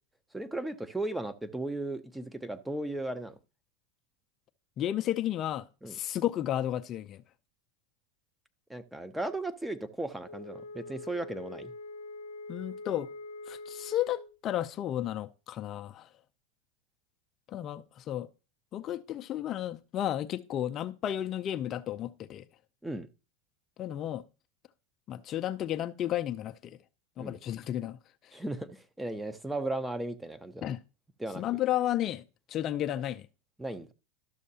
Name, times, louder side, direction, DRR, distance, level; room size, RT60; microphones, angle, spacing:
voice 1, 0.3-3.4 5.8-6.0 8.7-11.7 22.8-23.1 27.2-27.4 28.3-30.7 31.2-31.4 33.6-33.9, right 2 dB, 5° right, 0.6 m, -36 dB
voice 2, 4.8-7.2 12.5-13.1 13.5-16.1 17.5-18.3 18.7-22.4 23.8-24.2 25.1-26.8 27.2-28.0 30.6-30.8 31.4-32.2 32.5-33.3, left 12 dB, 40° left, 0.4 m, -33 dB
Wind instrument woodwind instrument, 10.2-14.4, left 2 dB, 85° left, 0.7 m, -44 dB
12.0 x 6.4 x 2.8 m
hypercardioid pair, 105°, 0 cm